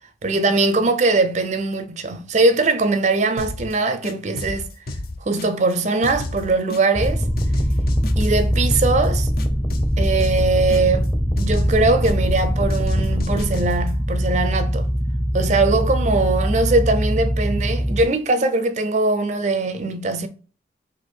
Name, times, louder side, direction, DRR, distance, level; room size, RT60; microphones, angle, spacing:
voice 1, 0.2-4.7 5.3-7.2 8.2-9.3 10.0-14.9 15.3-20.3, right 3 dB, 40° right, 0.4 m, -21 dB
sound 1, 3.4-3.7 4.0-5.7 6.0-7.1 7.4-9.1 9.4-11.1 11.4-12.4 12.7-13.9, left 2 dB, 50° left, 0.5 m, -32 dB
sound 2, 6.9-18.1, equal, 10° left, 0.6 m, -22 dB
4.3 x 2.5 x 4.3 m
head